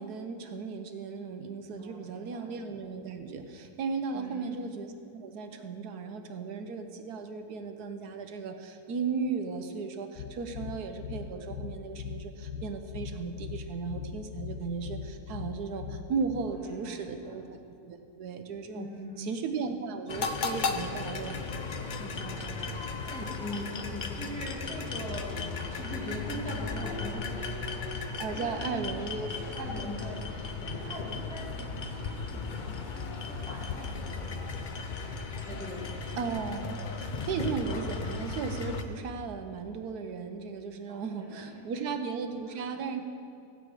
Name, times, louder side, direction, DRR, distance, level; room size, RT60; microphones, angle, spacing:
voice 1, 0.0-18.9 19.2-21.5 28.2-29.8 36.2-43.0, right 5 dB, 80° right, 6 dB, 1.3 m, -36 dB
voice 2, 1.8-2.5 4.1-4.6 16.3-17.4 18.7-19.3 22.0-28.0 28.3-28.7 29.4-34.8 35.5-36.1 40.9-41.7 42.5-42.9, equal, 5° left, -6 dB, 1.7 m, -42 dB
sound 1, 10.2-16.5, left 6 dB, 85° left, 1.2 m, -40 dB
sound 2, 20.1-38.8, left 4 dB, 50° left, 0.5 m, -36 dB
16.0 x 8.4 x 4.8 m, 2.6 s
omnidirectional pair, 1.7 m